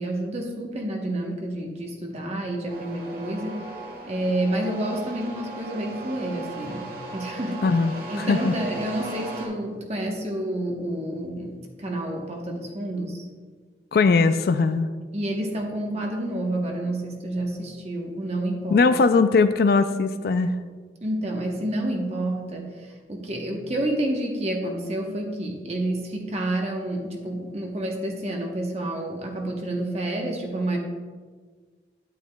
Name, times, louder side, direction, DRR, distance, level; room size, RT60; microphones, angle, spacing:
voice 1, 0.0-3.6 4.1-6.9 7.1-7.6 8.1-13.3 15.1-18.8 21.0-30.8, right 1 dB, 35° right, 1 dB, 1.0 m, -29 dB
sound 1, 2.7-9.5, right 2 dB, 55° right, 1.5 m, -37 dB
voice 2, 7.6-8.5 13.9-14.9 18.7-20.5, left 4 dB, 60° left, 10 dB, 0.3 m, -20 dB
9.5 x 8.9 x 2.3 m, 1.5 s
head